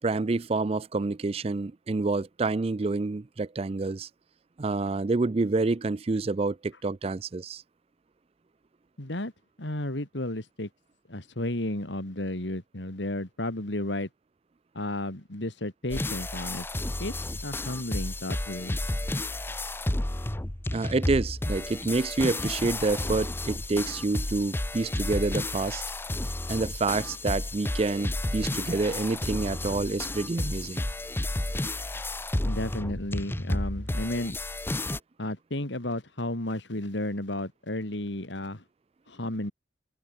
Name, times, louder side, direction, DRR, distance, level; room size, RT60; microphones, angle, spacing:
voice 1, 0.0-4.1 4.6-7.6 20.7-25.8 26.5-30.8, right 3 dB, 30° right, 0.4 m, -28 dB
voice 2, 9.0-9.3 9.6-10.7 11.1-14.1 14.7-16.7 17.0-17.1 17.4-18.8 32.4-34.4 35.2-38.6 39.1-39.5, left 1 dB, 75° left, 3.0 m, -33 dB
sound 1, 15.9-35.0, left 1 dB, 10° left, 0.6 m, -32 dB
head